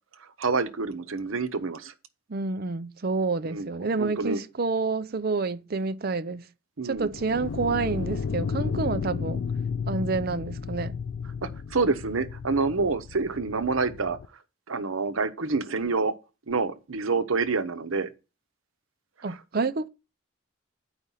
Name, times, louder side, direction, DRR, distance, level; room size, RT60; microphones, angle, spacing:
voice 1, 0.4-1.9 3.4-3.7 4.0-4.4 6.8-7.1 11.4-14.2 14.7-16.1 16.5-18.1, right 4 dB, 90° right, 0.9 m, -27 dB
voice 2, 2.3-6.4 6.8-9.5 9.9-11.0 19.2-19.9, right 4 dB, 50° right, 0.6 m, -28 dB
sound 1, 7.0-14.3, left 5 dB, 70° left, 0.4 m, -33 dB
9.7 x 5.0 x 5.6 m
head